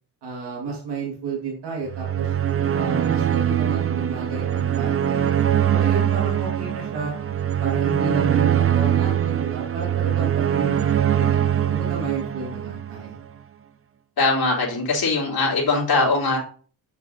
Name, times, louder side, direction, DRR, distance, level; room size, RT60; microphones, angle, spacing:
voice 1, 0.2-2.3 2.7-5.3 5.7-7.1 7.6-10.9 11.2-13.2, right 4 dB, 80° right, -2 dB, 1.9 m, -31 dB
sound 1, 1.9-13.2, right 10 dB, 35° right, 0.6 m, -22 dB
voice 2, 14.2-16.4, left 3 dB, 60° left, -3 dB, 3.2 m, -21 dB
6.6 x 6.6 x 2.7 m, 0.43 s
cardioid pair, 60°, 40 cm